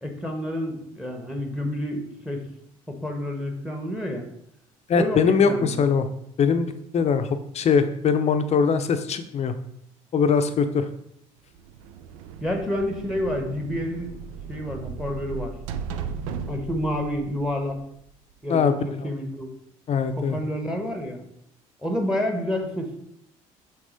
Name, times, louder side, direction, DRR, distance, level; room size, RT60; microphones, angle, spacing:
voice 1, 0.0-2.4 2.9-4.3 4.9-5.8 12.4-14.2 14.5-15.5 16.5-17.8 18.4-19.5 20.2-21.2 21.8-23.0, left 1 dB, 5° right, 4 dB, 1.3 m, -29 dB
voice 2, 4.9-6.1 6.4-9.5 10.1-10.8 18.5-19.1 19.9-20.4, left 6 dB, 35° left, 9 dB, 0.7 m, -22 dB
sound 1, 11.6-18.3, right 6 dB, 70° right, 0.5 m, -36 dB
6.1 x 4.1 x 4.1 m, 0.74 s
figure-of-eight pair, 55°, 18 cm